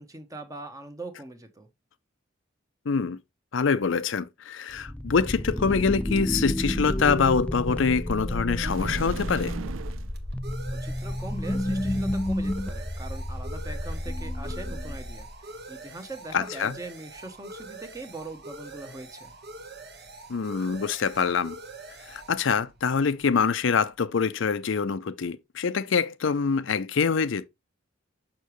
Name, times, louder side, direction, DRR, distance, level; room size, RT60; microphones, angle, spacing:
voice 1, 0.0-1.7 10.8-19.3, right 2 dB, 15° right, 1.0 m, -41 dB
voice 2, 2.9-3.2 3.5-9.6 16.3-16.7 20.3-21.6 22.1-27.5, left 5 dB, 65° left, 0.5 m, -25 dB
sound 1, 4.7-15.4, left 1 dB, 5° left, 0.3 m, -30 dB
sound 2, 8.6-10.1, right 6 dB, 75° right, 0.4 m, -38 dB
sound 3, 10.1-23.9, right 2 dB, 55° right, 1.2 m, -45 dB
6.4 x 6.0 x 3.0 m
head